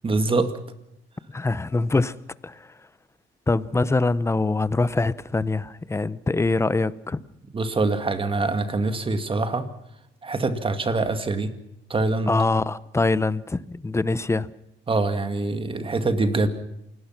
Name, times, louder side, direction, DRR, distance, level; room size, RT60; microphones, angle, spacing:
voice 1, 0.0-0.5 7.5-9.7 10.2-11.5 11.9-12.3 14.9-16.5, right 3 dB, 25° right, 2.2 m, -24 dB
voice 2, 1.3-2.2 2.4-2.7 3.5-7.2 12.3-14.5, left 3 dB, 15° left, 0.8 m, -24 dB
28.0 x 19.0 x 6.0 m
cardioid pair, 125°, 20 cm